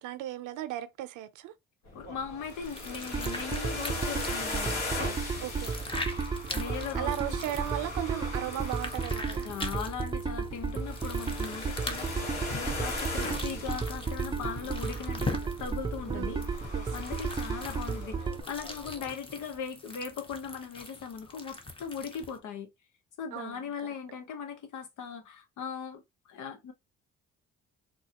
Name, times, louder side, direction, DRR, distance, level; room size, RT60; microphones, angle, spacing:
voice 1, 0.0-1.5 5.4-6.3 7.0-9.5 16.1-16.9 23.3-23.7, right 13 dB, 90° right, 0.6 m, -37 dB
voice 2, 1.9-4.8 6.5-7.4 9.4-16.4 16.9-22.7 23.2-26.0 26.3-26.7, left 6 dB, 80° left, 1.0 m, -39 dB
sound 1, 1.9-19.1, left 2 dB, 60° left, 1.4 m, -40 dB
sound 2, 2.4-22.4, left 2 dB, 15° left, 0.8 m, -42 dB
sound 3, 3.1-18.4, right 5 dB, 15° right, 0.4 m, -34 dB
3.8 x 2.3 x 2.8 m
cardioid pair, 90°, 30 cm